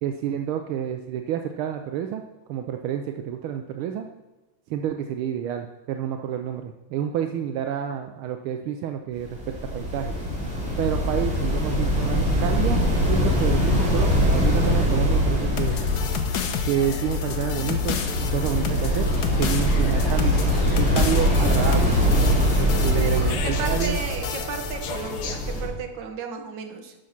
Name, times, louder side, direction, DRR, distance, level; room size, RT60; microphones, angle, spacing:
voice 1, 0.0-2.2 2.5-4.1 4.7-10.1 10.8-15.8 16.6-19.1 19.4-21.9 22.6-24.0, right 9 dB, 80° right, 6 dB, 1.5 m, -29 dB
sound 1, 9.2-25.7, equal, 5° right, 3.0 m, -23 dB
sound 2, 15.6-25.6, left 5 dB, 60° left, 1.2 m, -29 dB
voice 2, 23.0-26.9, right 6 dB, 60° right, 4 dB, 1.7 m, -34 dB
12.0 x 6.5 x 5.8 m, 1.1 s
omnidirectional pair, 2.3 m